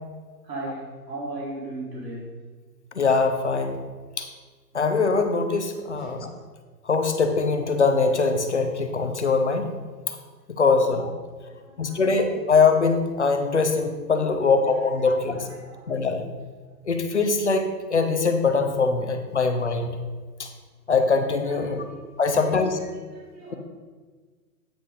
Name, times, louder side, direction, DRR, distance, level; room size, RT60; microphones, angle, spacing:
voice 1, 0.4-2.3 6.0-6.1 11.4-12.0 15.2-15.9 21.5-21.9 22.3-22.5 23.1-23.6, right 2 dB, 75° right, -5 dB, 2.3 m, -37 dB
voice 2, 3.0-3.8 4.2-4.3 4.7-6.3 6.9-9.7 10.5-11.1 11.8-15.5 15.9-16.2 16.9-19.9 20.4-20.5 20.9-21.9 22.2-22.8, left 4 dB, 45° left, 6 dB, 0.6 m, -22 dB
8.6 x 5.1 x 3.7 m, 1.4 s
hypercardioid pair, 180°, 49 cm